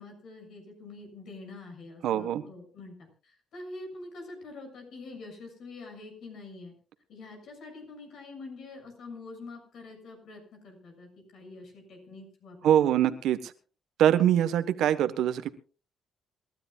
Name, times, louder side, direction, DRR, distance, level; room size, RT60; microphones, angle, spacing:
voice 1, 0.0-6.7 7.1-13.1, left 3 dB, 70° left, 3 dB, 7.1 m, -45 dB
voice 2, 2.0-2.4 12.6-13.5 14.0-15.5, right 10 dB, 80° right, 11 dB, 1.3 m, -23 dB
27.0 x 13.0 x 2.5 m, 0.36 s
cardioid pair, 90°, 0 cm